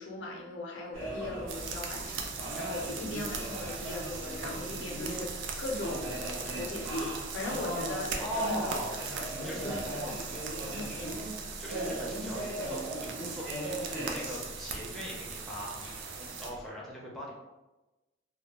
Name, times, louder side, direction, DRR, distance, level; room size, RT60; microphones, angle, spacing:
voice 1, 0.0-6.2 6.5-8.8 9.1-11.2, left 2 dB, 75° left, 0 dB, 0.5 m, -39 dB
sound 1, 0.9-16.7, right 1 dB, 90° right, 1.0 m, -39 dB
sound 2, 1.5-16.5, right 5 dB, 75° right, 0.3 m, -40 dB
voice 2, 8.2-9.0 9.4-9.6 11.6-13.5 13.8-15.8 16.2-17.3, equal, ahead, -5 dB, 0.4 m, -39 dB
2.1 x 2.1 x 2.9 m, 1.1 s
head